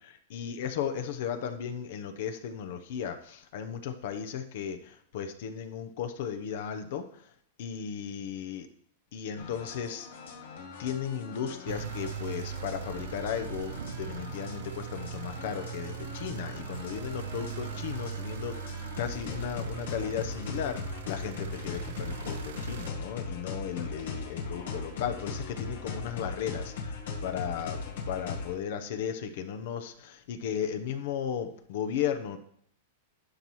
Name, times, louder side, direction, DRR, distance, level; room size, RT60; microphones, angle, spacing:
voice 1, 0.3-4.8 5.1-7.0 7.6-8.7 9.1-10.1 10.8-26.7 27.2-27.8 28.1-32.4, left 8 dB, 65° left, 8 dB, 0.8 m, -35 dB
sound 1, 9.4-28.6, left 4 dB, 80° left, 1.5 m, -40 dB
sound 2, 11.7-22.9, right 9 dB, 75° right, 0.5 m, -40 dB
11.5 x 5.5 x 3.1 m, 0.67 s
supercardioid pair, 140°, 0 cm